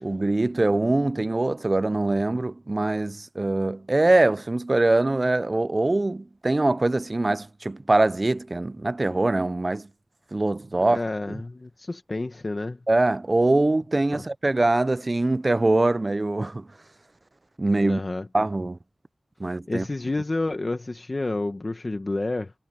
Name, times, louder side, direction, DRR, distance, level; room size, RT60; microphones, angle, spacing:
voice 1, 0.0-9.9 10.3-11.0 12.9-16.7 17.6-18.0 18.3-18.8 19.4-19.9, right 2 dB, 30° right, 0.5 m, -23 dB
voice 2, 10.8-12.8 14.1-14.2 17.8-18.3 19.7-22.5, left 2 dB, 35° left, 1.3 m, -29 dB
wide cardioid pair, 95°, 0 cm